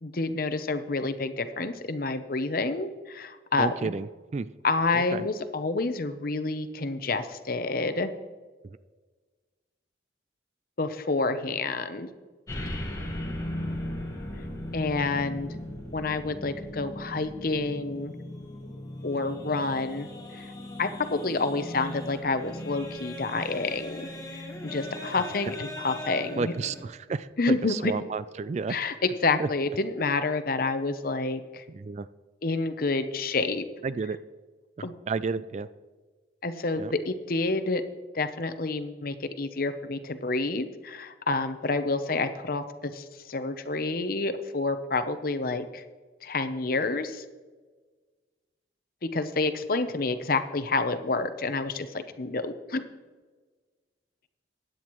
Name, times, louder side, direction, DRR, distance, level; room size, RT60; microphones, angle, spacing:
voice 1, 0.0-3.9 4.6-8.1 10.8-12.1 14.7-15.5 15.9-18.1 19.0-20.1 20.3-20.5 20.8-24.0 24.3-26.5 27.4-27.9 28.7-31.6 32.4-33.7 34.8-34.9 36.4-37.8 38.1-45.8 46.2-47.2 49.0-52.8, left 3 dB, 50° left, 10 dB, 0.8 m, -28 dB
voice 2, 3.5-4.5 4.9-5.2 8.6-8.8 26.4-28.8 29.4-29.5 31.7-32.1 33.8-34.2 34.8-35.7 36.8-36.9, right 4 dB, 35° right, 15 dB, 0.3 m, -32 dB
sound 1, 12.5-26.8, left 1 dB, 20° left, 1.5 m, -38 dB
16.0 x 10.0 x 3.1 m, 1.4 s
head